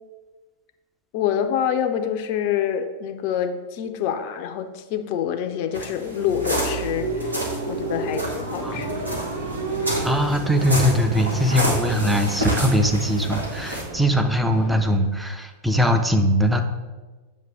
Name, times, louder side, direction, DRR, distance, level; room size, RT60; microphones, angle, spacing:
voice 1, 1.1-7.4 7.7-9.2, left 9 dB, 45° left, 7 dB, 0.5 m, -26 dB
sound 1, 5.7-14.4, right 3 dB, 65° right, 0.7 m, -32 dB
sound 2, 5.7-7.6 8.1-13.8, equal, 80° right, 1.2 m, -28 dB
sound 3, 8.6-15.0, right 4 dB, 40° right, 2.1 m, -38 dB
voice 2, 10.0-16.6, equal, 5° right, 6 dB, 0.6 m, -21 dB
7.3 x 2.9 x 5.8 m, 1.3 s
figure-of-eight pair, 90°, 0 cm